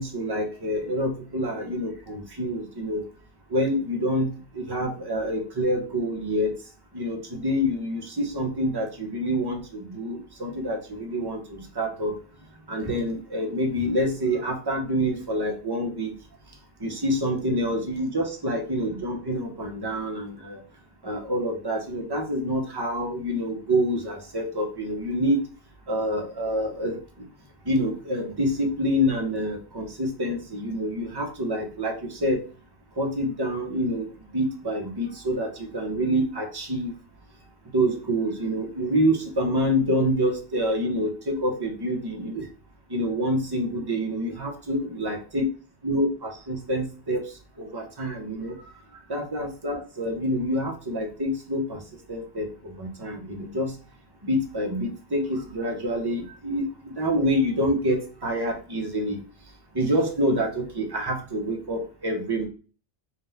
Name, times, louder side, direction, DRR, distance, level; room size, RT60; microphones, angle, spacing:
voice 1, 0.0-3.1 3.5-6.6 6.9-12.2 12.7-16.1 16.8-20.6 21.0-25.4 25.9-27.0 27.6-32.4 33.0-34.1 34.3-36.9 37.7-42.5 42.9-45.4 45.8-47.2 47.6-48.6 49.1-51.8 52.1-53.7 54.2-59.2 59.7-62.5, equal, 25° right, 2 dB, 0.7 m, -27 dB
4.1 x 2.3 x 3.9 m, 0.37 s
omnidirectional pair, 1.2 m